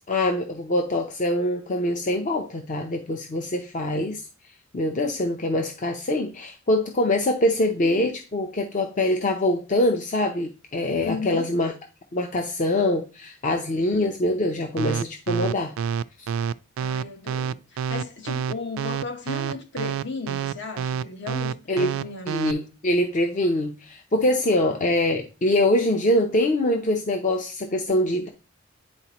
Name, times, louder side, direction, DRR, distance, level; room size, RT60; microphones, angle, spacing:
voice 1, 0.0-4.2 4.7-11.7 12.1-15.7 16.2-16.3 21.7-21.9 22.3-28.3, left 1 dB, 40° left, 0.6 m, -24 dB
voice 2, 11.0-11.5 16.8-22.4, left 4 dB, 60° left, 1.0 m, -35 dB
sound 1, 14.8-22.5, right 7 dB, 75° right, 0.3 m, -27 dB
9.7 x 4.1 x 2.9 m
head